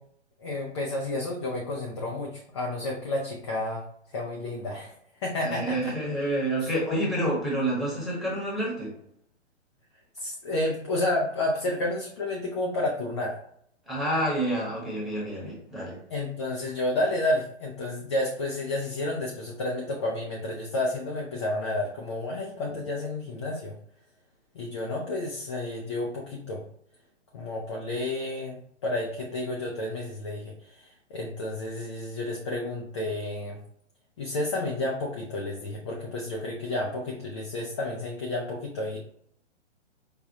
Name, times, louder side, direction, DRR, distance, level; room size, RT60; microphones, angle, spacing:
voice 1, 0.4-3.8 4.1-4.9 5.2-5.9 6.6-6.7 10.1-13.3 16.1-23.7 24.5-26.6 27.3-33.6 34.2-39.0, left 2 dB, 25° left, -1 dB, 0.4 m, -31 dB
voice 2, 5.4-8.9 13.9-16.0, right 1 dB, ahead, -6 dB, 1.0 m, -28 dB
4.8 x 2.2 x 2.6 m, 0.69 s
figure-of-eight pair, 125°, 35 cm